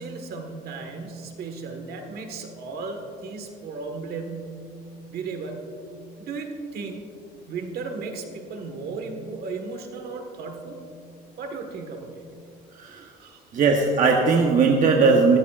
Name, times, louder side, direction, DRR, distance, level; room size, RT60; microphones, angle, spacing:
voice 1, 0.0-4.6 5.1-5.7 6.2-7.0 7.5-10.8 11.4-12.3 13.2-13.4, right 4 dB, 70° right, 4 dB, 1.6 m, -35 dB
voice 2, 12.8-13.1 13.5-15.4, right 4 dB, 50° right, 1 dB, 1.1 m, -19 dB
14.5 x 14.0 x 2.5 m, 2.3 s
cardioid pair, 110°, 17 cm